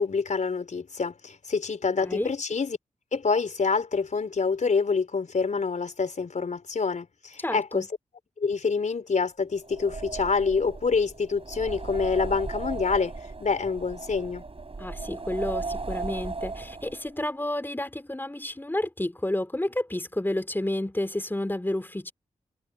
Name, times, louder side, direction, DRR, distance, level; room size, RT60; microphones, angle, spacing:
voice 1, 0.0-2.8 3.1-7.8 8.4-13.1 13.4-14.4, left 5 dB, 70° left, 4.4 m, -26 dB
voice 2, 2.0-2.3 7.4-7.9 14.8-22.1, left 1 dB, 15° left, 2.9 m, -30 dB
sound 1, 9.6-17.2, right 3 dB, 45° right, 4.8 m, -36 dB
cardioid pair, 40°, 13 cm